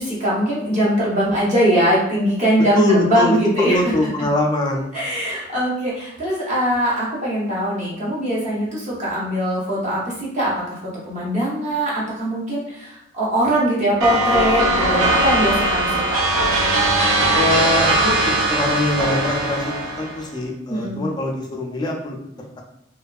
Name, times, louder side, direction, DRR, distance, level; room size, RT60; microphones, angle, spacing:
voice 1, 0.0-3.9 4.9-10.8 11.0-16.2 20.7-21.0, equal, 35° right, -6 dB, 0.8 m, -21 dB
voice 2, 2.7-4.9 17.3-18.2 18.5-19.7 20.0-22.6, left 1 dB, 20° left, 0 dB, 0.3 m, -22 dB
sound 1, 14.0-20.2, right 2 dB, 90° right, 0.5 m, -19 dB
2.6 x 2.3 x 2.3 m, 0.77 s
head